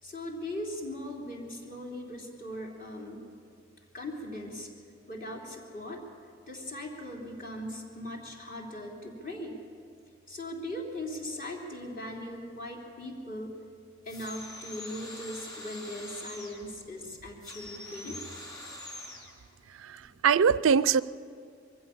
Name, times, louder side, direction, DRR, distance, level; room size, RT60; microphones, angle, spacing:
voice 1, 0.0-3.2 3.9-4.7 5.1-6.0 6.5-9.6 10.3-13.6 14.1-18.2 20.0-20.1, left 1 dB, 45° left, 0 dB, 3.4 m, -39 dB
sound 1, 14.1-16.7 17.4-19.3, left 1 dB, 20° left, 4.6 m, -44 dB
voice 2, 19.7-21.0, right 6 dB, 75° right, 17 dB, 0.4 m, -23 dB
23.0 x 15.5 x 7.1 m, 2.5 s
head